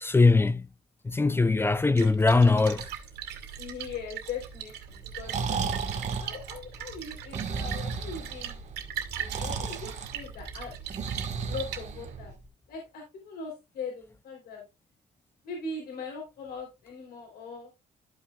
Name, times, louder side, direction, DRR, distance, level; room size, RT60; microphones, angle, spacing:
voice 1, 0.0-0.7 1.0-2.9, left 3 dB, 15° left, 0.4 m, -21 dB
Splash splatter, 1.7-12.3, right 8 dB, 75° right, 2.4 m, -40 dB
voice 2, 3.6-5.6 6.2-8.6 9.2-10.7 11.5-12.4 12.7-14.6 15.4-17.7, left 4 dB, 65° left, 3.6 m, -40 dB
Breathing, 5.0-12.4, right 5 dB, 45° right, 1.6 m, -34 dB
14.0 x 5.6 x 2.4 m
cardioid pair, 110°, 17 cm